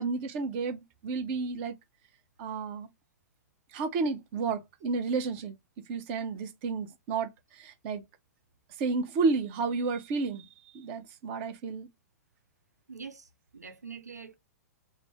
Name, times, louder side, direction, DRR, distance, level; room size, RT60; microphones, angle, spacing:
voice 1, 0.0-1.7 2.4-2.9 3.7-5.5 5.9-8.0 8.8-10.5 10.7-11.9, right 4 dB, 45° right, 0.7 m, -31 dB
voice 2, 12.9-13.3 13.5-14.4, right 5 dB, 85° right, 0.6 m, -44 dB
2.5 x 2.0 x 3.4 m
figure-of-eight pair, 105°, 9 cm